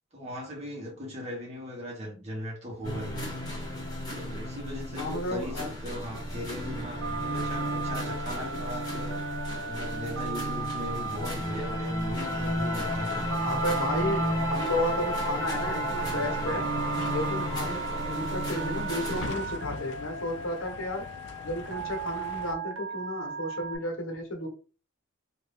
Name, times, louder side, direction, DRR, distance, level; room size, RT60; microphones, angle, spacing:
voice 1, 0.1-3.6 4.1-9.2 9.7-13.2, equal, 30° right, 1.2 m, -38 dB
sound 1, 2.7-22.5, left 4 dB, 55° left, 0.3 m, -46 dB
sound 2, 2.8-19.3, left 1 dB, 20° left, 1.7 m, -33 dB
voice 2, 5.0-5.7 13.4-14.2 14.5-16.7 17.1-21.1 21.4-24.5, left 1 dB, 85° left, 1.0 m, -33 dB
Telephone, 7.0-23.8, right 6 dB, 70° right, 0.7 m, -36 dB
2.7 x 2.5 x 3.4 m
head